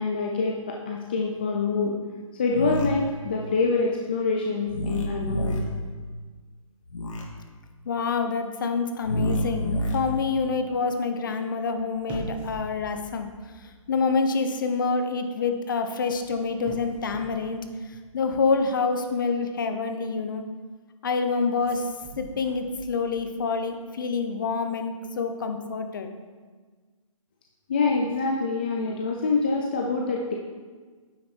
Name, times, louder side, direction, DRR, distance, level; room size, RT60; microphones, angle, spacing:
voice 1, 0.0-1.9 2.4-5.6 27.7-30.3, left 4 dB, 15° left, -1 dB, 0.4 m, -25 dB
sound 1, 2.5-2.9 4.7-5.6 6.8-7.2 9.0-10.0, equal, 65° left, 2.4 m, -28 dB
voice 2, 7.9-13.3 13.6-17.6 18.1-20.4 21.0-21.9 22.2-26.1, left 4 dB, 35° left, 7 dB, 0.9 m, -27 dB
sound 2, 11.9-14.2 14.5-14.8 16.1-18.3 21.6-23.5 23.8-23.9, right 2 dB, 5° right, 0.9 m, -43 dB
9.3 x 7.4 x 4.4 m, 1.4 s
hypercardioid pair, 170°, 18 cm